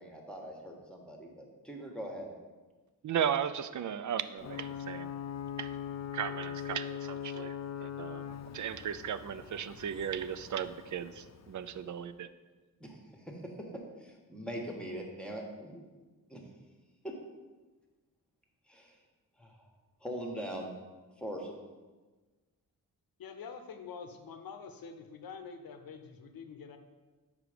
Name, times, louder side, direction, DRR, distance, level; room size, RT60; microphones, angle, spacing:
voice 1, 0.0-2.3 12.8-13.5 14.0-15.8 16.3-16.4 17.0-17.1 18.7-19.0 19.4-19.7 20.0-20.7 21.2-21.6, equal, 5° left, 0 dB, 1.3 m, -42 dB
voice 2, 3.0-5.2 5.6-5.8 6.1-7.6 7.8-8.3 8.5-12.3, right 8 dB, 55° right, 12 dB, 0.4 m, -36 dB
Ocean / Boat Water vehicle / Alarm, 4.4-11.9, left 9 dB, 50° left, 0.4 m, -42 dB
voice 3, 23.2-26.8, left 5 dB, 75° left, 7 dB, 0.7 m, -46 dB
4.9 x 4.9 x 5.0 m, 1.3 s
cardioid pair, 55°, 35 cm